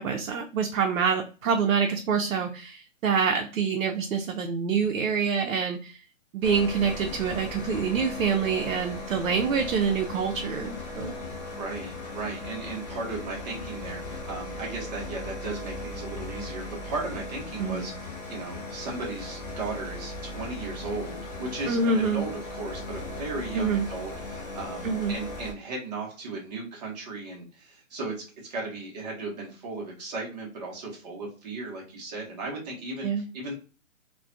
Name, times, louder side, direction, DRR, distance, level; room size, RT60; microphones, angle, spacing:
voice 1, 0.0-6.0 6.3-11.2 17.6-17.9 21.7-22.2 23.5-23.9 24.8-25.2 33.0-33.2, right 6 dB, 90° right, 3 dB, 0.5 m, -26 dB
sound 1, 6.4-25.5, left 2 dB, 35° left, 0.5 m, -38 dB
voice 2, 11.5-33.5, right 3 dB, 30° right, -2 dB, 0.8 m, -36 dB
2.3 x 2.2 x 2.4 m, 0.35 s
hypercardioid pair, 160°, 40 cm